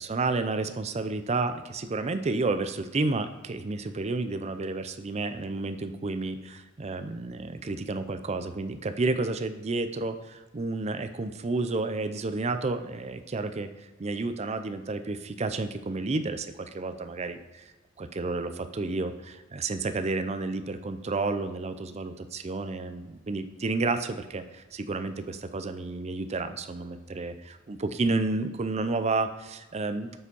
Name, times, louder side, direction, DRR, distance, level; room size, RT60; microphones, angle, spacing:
voice 1, 0.0-13.7 14.0-17.6 18.0-30.2, right 3 dB, 30° right, 9 dB, 0.5 m, -31 dB
8.1 x 5.0 x 5.4 m, 1.1 s
head